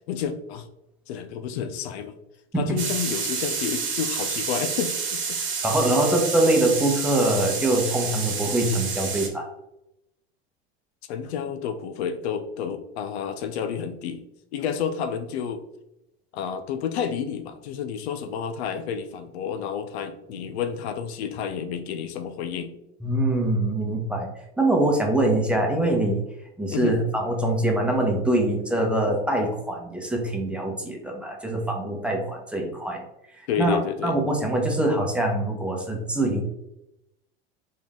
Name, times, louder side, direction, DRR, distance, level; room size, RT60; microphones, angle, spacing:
voice 1, 0.1-0.7 1.1-2.2 2.6-5.4 11.1-14.2 14.5-15.6 16.3-22.8 26.7-26.9 33.5-34.1, left 7 dB, 75° left, 9 dB, 0.6 m, -30 dB
sound 1, 2.8-9.3, right 5 dB, 35° right, 1.3 m, -29 dB
voice 2, 5.6-9.4 23.0-24.3 24.6-26.2 26.6-33.0 33.6-33.8 34.0-36.4, right 1 dB, 5° right, 0 dB, 1.1 m, -23 dB
3.7 x 3.7 x 3.7 m, 0.85 s
hypercardioid pair, 90°, 32 cm